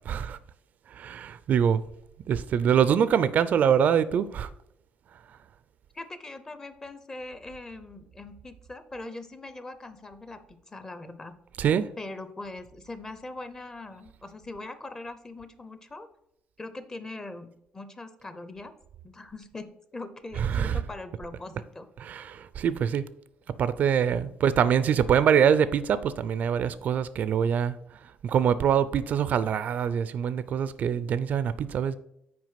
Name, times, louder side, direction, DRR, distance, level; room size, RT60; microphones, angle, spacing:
voice 1, 0.1-0.4 1.0-1.8 2.3-4.5 11.6-11.9 20.4-20.8 22.0-23.1 23.6-27.7 28.2-31.9, right 8 dB, 55° right, 0.4 m, -24 dB
voice 2, 5.9-11.4 12.0-16.1 16.6-18.7 19.0-21.9, left 2 dB, 20° left, 0.7 m, -41 dB
6.0 x 4.6 x 5.7 m
cardioid pair, 120°, 3 cm